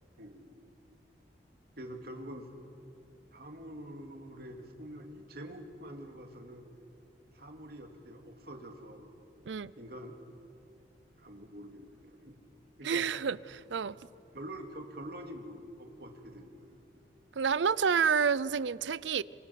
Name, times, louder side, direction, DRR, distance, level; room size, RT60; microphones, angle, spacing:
voice 1, 0.2-0.6 1.8-2.5 3.3-6.7 7.3-9.1 9.8-10.2 11.2-12.4 12.8-13.1 14.3-16.8, right 1 dB, 55° right, 3 dB, 2.5 m, -46 dB
voice 2, 12.8-13.9 17.3-19.2, right 6 dB, 80° right, 19 dB, 0.5 m, -29 dB
27.0 x 25.5 x 5.9 m, 2.6 s
head